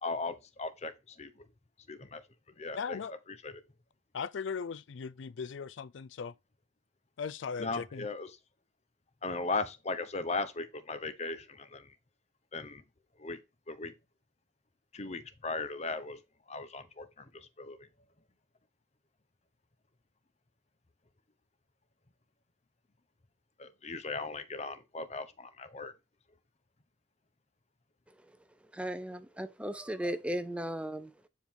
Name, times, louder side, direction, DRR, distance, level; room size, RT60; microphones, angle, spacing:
voice 1, 0.0-1.4 1.9-2.2 2.6-3.0 3.3-3.6 7.6-8.3 9.2-11.9 12.5-12.8 13.2-13.4 13.7-13.9 14.9-16.2 16.5-17.9 23.6-25.9, left 3 dB, 35° left, 0.8 m, -38 dB
voice 2, 2.7-3.1 4.1-6.3 7.2-8.1, left 6 dB, 85° left, 0.4 m, -38 dB
voice 3, 28.7-31.3, right 1 dB, 5° right, 0.5 m, -37 dB
9.3 x 4.5 x 3.6 m
head